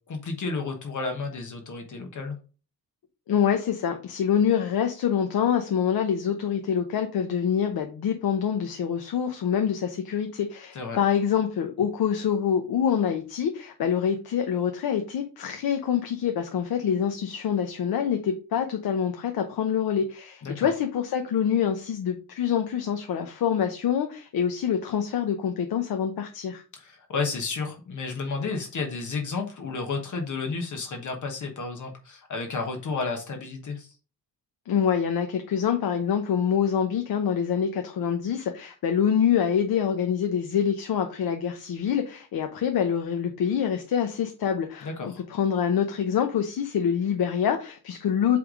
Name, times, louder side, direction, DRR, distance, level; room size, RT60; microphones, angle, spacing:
voice 1, 0.1-2.4 10.7-11.0 20.4-20.7 26.7-33.9 44.8-45.2, left 4 dB, 50° left, 3 dB, 1.2 m, -32 dB
voice 2, 3.3-26.6 34.7-48.4, left 8 dB, 75° left, 5 dB, 0.9 m, -26 dB
7.9 x 3.5 x 3.7 m, 0.35 s
wide cardioid pair, 145°, 37 cm